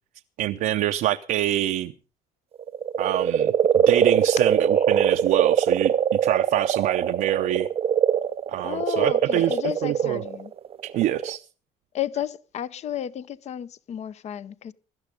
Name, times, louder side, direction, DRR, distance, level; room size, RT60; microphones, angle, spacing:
voice 1, 0.4-1.9 3.0-5.9 6.2-7.7 8.5-10.2 10.8-11.4, right 13 dB, 75° right, 0.7 m, -25 dB
sound 1, 2.6-11.3, right 8 dB, 45° right, 0.8 m, -22 dB
voice 2, 8.6-10.5 11.9-14.7, left 10 dB, 50° left, 0.8 m, -32 dB
17.0 x 12.5 x 5.2 m
cardioid pair, 110°, 14 cm